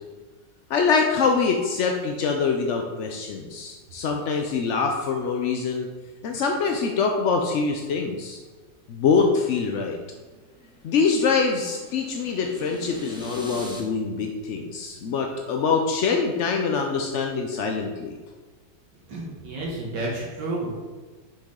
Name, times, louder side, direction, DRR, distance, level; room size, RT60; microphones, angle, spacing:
voice 1, 0.7-5.9 6.2-8.4 8.9-10.0 10.8-18.2, left 5 dB, 65° left, 3 dB, 0.7 m, -24 dB
sound 1, 10.0-13.8, equal, 5° right, 0.9 m, -43 dB
voice 2, 19.1-20.8, right 2 dB, 75° right, -3 dB, 1.9 m, -31 dB
7.1 x 6.3 x 3.7 m, 1.4 s
omnidirectional pair, 1.9 m